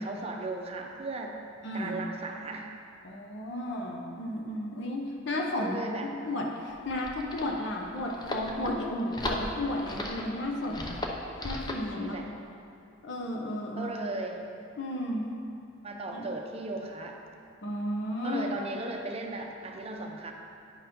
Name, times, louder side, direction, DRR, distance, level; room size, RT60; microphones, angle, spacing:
voice 1, 0.0-1.4 1.7-2.7 5.6-6.1 12.0-12.3 13.8-14.5 15.8-17.2 18.2-20.3, right 2 dB, 30° right, 2 dB, 0.6 m, -36 dB
voice 2, 1.6-2.0 3.0-11.0 11.4-12.2 13.0-13.9 14.8-15.3 16.1-16.3 17.6-18.5, left 1 dB, 65° left, 0 dB, 0.8 m, -33 dB
sound 1, 6.7-11.9, left 1 dB, 20° left, 0.7 m, -37 dB
9.9 x 4.6 x 5.3 m, 2.5 s
head